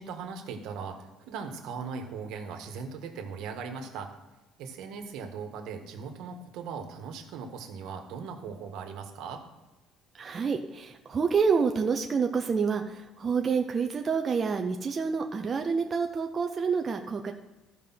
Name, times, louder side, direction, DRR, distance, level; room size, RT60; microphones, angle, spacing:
voice 1, 0.0-4.1 4.6-9.4, right 5 dB, 75° right, 5 dB, 1.5 m, -39 dB
voice 2, 10.1-17.3, right 5 dB, 25° right, 4 dB, 0.6 m, -28 dB
14.0 x 5.0 x 5.8 m, 1.1 s
cardioid pair, 160°, 0 cm